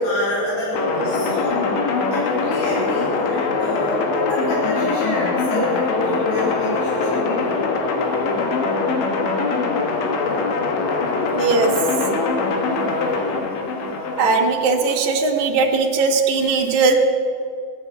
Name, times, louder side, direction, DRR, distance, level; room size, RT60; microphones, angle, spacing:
voice 1, 0.0-1.6 2.1-7.7, left 1 dB, 65° left, -6 dB, 6.3 m, -26 dB
sound 1, 0.7-14.5, left 4 dB, 85° left, 3.9 m, -22 dB
voice 2, 11.3-11.7 14.2-16.9, right 4 dB, 60° right, 1 dB, 2.1 m, -19 dB
17.0 x 11.5 x 7.3 m, 2.3 s
omnidirectional pair, 5.1 m